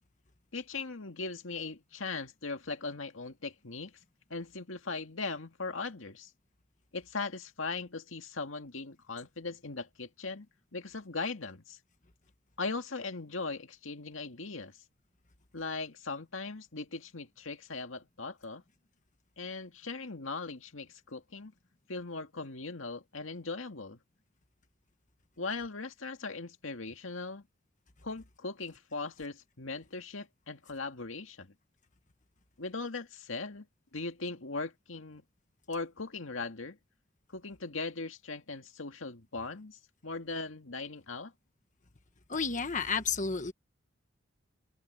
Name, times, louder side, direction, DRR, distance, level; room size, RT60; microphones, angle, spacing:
voice 1, 0.5-4.0 4.3-6.3 6.9-10.5 10.7-11.8 12.6-14.7 15.5-18.6 19.4-21.5 21.9-24.0 25.4-27.4 28.0-31.5 32.6-33.7 33.9-35.2 35.7-36.8 37.3-41.3, left 3 dB, 90° left, 2.1 m, -39 dB
voice 2, 42.3-43.5, left 5 dB, 40° left, 1.3 m, -31 dB
open air
head